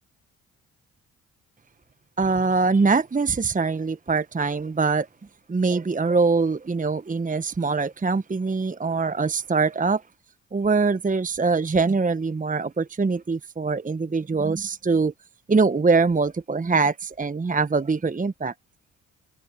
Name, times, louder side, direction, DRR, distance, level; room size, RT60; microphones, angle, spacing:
voice 1, 2.2-5.1 5.5-10.0 10.5-15.1 15.5-18.5, right 4 dB, 20° right, 1.3 m, -23 dB
figure-of-eight pair, 45°, 39 cm